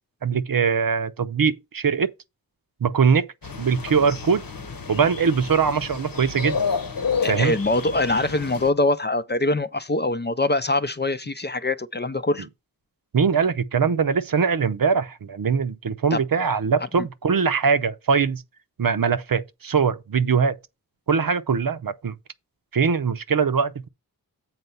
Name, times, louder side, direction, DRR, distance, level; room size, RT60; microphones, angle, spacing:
voice 1, 0.2-2.1 2.8-3.3 3.6-4.4 4.9-6.6 7.2-7.5 13.1-18.4 18.8-20.6 21.1-22.1 22.7-23.9, right 6 dB, 65° right, 0.7 m, -22 dB
sound 1, 3.4-8.7, left 5 dB, 65° left, 1.1 m, -30 dB
voice 2, 7.2-12.5 16.1-16.2 17.0-17.1, left 2 dB, 30° left, 0.5 m, -23 dB
8.0 x 4.4 x 5.5 m
wide cardioid pair, 70°, 37 cm